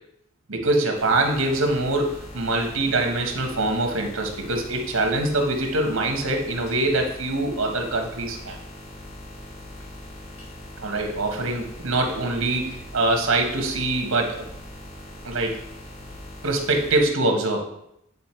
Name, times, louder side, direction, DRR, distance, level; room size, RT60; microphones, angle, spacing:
voice 1, 0.5-8.6 10.8-14.5 15.2-15.6 16.4-17.7, right 2 dB, 85° right, 3 dB, 1.3 m, -24 dB
sound 1, 0.9-17.0, left 1 dB, 65° left, 2.9 m, -41 dB
8.5 x 3.9 x 4.4 m, 0.76 s
head